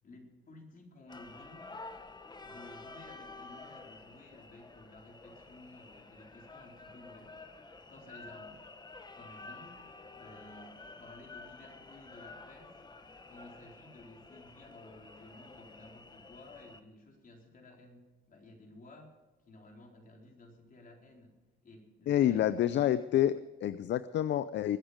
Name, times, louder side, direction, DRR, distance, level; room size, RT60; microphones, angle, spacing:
voice 1, 0.0-1.7 2.4-7.3 7.9-8.7 9.2-9.8 10.2-12.8 13.3-19.2 19.5-21.4 21.6-23.0, left 2 dB, 45° left, 0 dB, 4.1 m, -54 dB
sound 1, 1.1-16.8, left 3 dB, 20° left, 1.1 m, -50 dB
voice 2, 22.1-24.8, left 11 dB, 65° left, 15 dB, 0.5 m, -28 dB
21.5 x 9.0 x 5.1 m, 1.2 s
cardioid pair, 90°, 20 cm